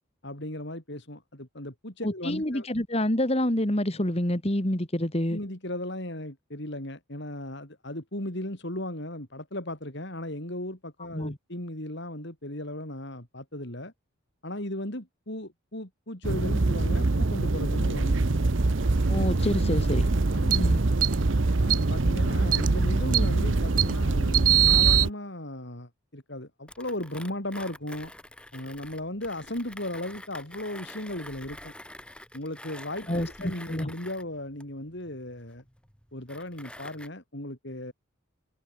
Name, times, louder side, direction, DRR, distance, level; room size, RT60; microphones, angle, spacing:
voice 1, 0.2-2.7 5.3-13.9 14.4-18.2 20.3-20.7 21.6-28.1 28.5-31.7 32.3-35.6 36.1-37.9, left 1 dB, 55° left, 4.3 m, -36 dB
voice 2, 2.0-5.4 11.1-11.4 19.1-20.0 20.5-20.8 33.1-33.9, left 1 dB, 30° left, 2.2 m, -27 dB
sound 1, 16.2-25.1, right 2 dB, 60° right, 0.9 m, -24 dB
sound 2, 18.5-25.1, right 12 dB, 40° right, 0.4 m, -27 dB
Mechanisms, 26.7-37.1, left 1 dB, 5° left, 5.5 m, -47 dB
head